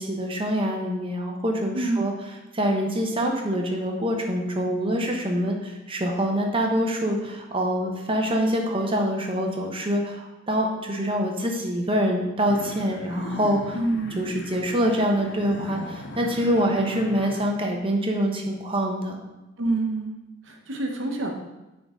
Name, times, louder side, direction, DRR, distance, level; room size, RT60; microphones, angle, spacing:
voice 1, 0.0-2.1 2.5-13.8 14.2-19.2, equal, 25° right, 1 dB, 0.9 m, -25 dB
voice 2, 1.7-2.1 13.7-14.3 16.6-17.1 19.6-20.2 20.5-21.3, right 2 dB, 65° right, 1 dB, 1.1 m, -27 dB
sound 1, 12.5-17.5, left 2 dB, 55° left, 0.7 m, -38 dB
9.4 x 3.8 x 3.6 m, 1.0 s
head